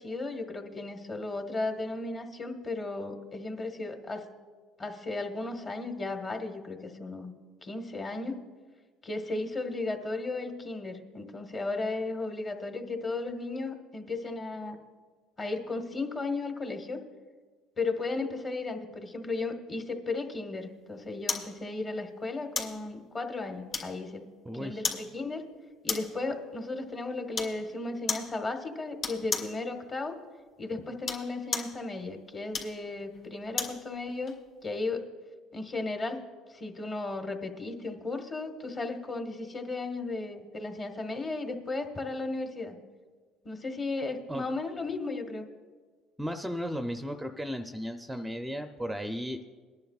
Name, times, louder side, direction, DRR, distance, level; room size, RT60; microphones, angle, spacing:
voice 1, 0.0-4.3 4.8-7.3 7.6-8.4 9.0-14.8 15.4-17.0 17.8-24.2 24.6-25.4 25.8-30.2 30.6-34.3 34.6-35.0 35.5-36.2 36.5-42.7 43.4-45.5, left 3 dB, 30° left, 5 dB, 1.5 m, -35 dB
sound 1, 21.3-21.5 22.5-22.8 23.7-24.2 24.8-25.1 25.9-26.2 27.3-27.6 28.1-28.3 29.0-29.6 30.9-31.8 32.5-33.8 34.3-34.4, left 4 dB, 50° left, 2.4 m, -33 dB
voice 2, 24.5-24.8 44.3-44.4 46.2-49.5, equal, 5° right, 6 dB, 0.6 m, -35 dB
23.0 x 10.5 x 2.4 m, 1.5 s
supercardioid pair, 105°, 0 cm